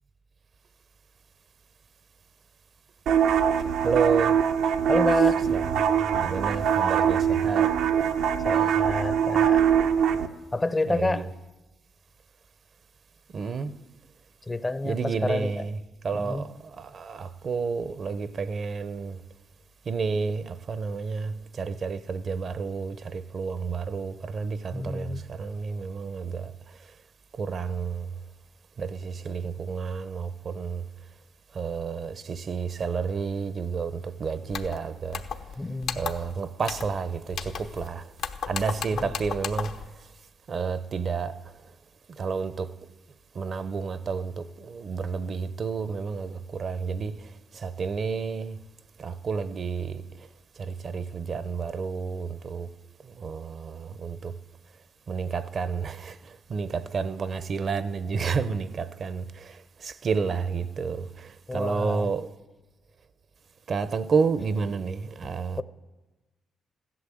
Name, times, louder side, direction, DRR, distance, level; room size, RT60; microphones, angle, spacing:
sound 1, 3.1-10.3, right 8 dB, 85° right, 0.8 m, -23 dB
voice 1, 3.8-4.4 5.5-5.6 6.1-7.7 10.9-11.2 13.3-13.8 14.8-15.7 16.0-19.2 19.9-26.5 27.3-28.1 28.8-30.8 31.5-35.2 36.0-38.1 38.5-39.7 40.5-41.3 42.2-42.7 43.3-48.6 49.0-50.0 50.6-52.7 53.1-54.4 55.1-62.3 63.7-65.6, right 5 dB, 50° right, 0.7 m, -30 dB
voice 2, 4.9-5.5 8.4-9.7 10.5-11.3 14.4-15.7 16.1-16.5 24.7-25.2 35.6-36.1 38.9-39.1 61.5-62.1, left 2 dB, 20° left, 0.6 m, -29 dB
sound 2, 34.5-34.8 35.1-35.5 35.8-36.3 36.6-37.0 37.3-37.9 38.2-39.9, left 7 dB, 75° left, 1.0 m, -34 dB
16.0 x 11.5 x 7.7 m
cardioid pair, 90°, 0 cm